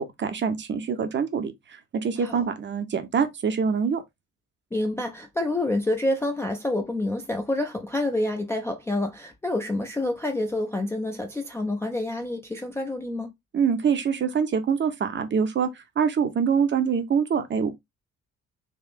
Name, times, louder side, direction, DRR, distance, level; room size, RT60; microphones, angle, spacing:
voice 1, 0.0-4.0 13.5-17.7, right 6 dB, 30° right, 0.7 m, -25 dB
voice 2, 4.7-13.3, left 1 dB, 5° left, 0.4 m, -28 dB
3.5 x 2.5 x 2.4 m
figure-of-eight pair, 45°, 40 cm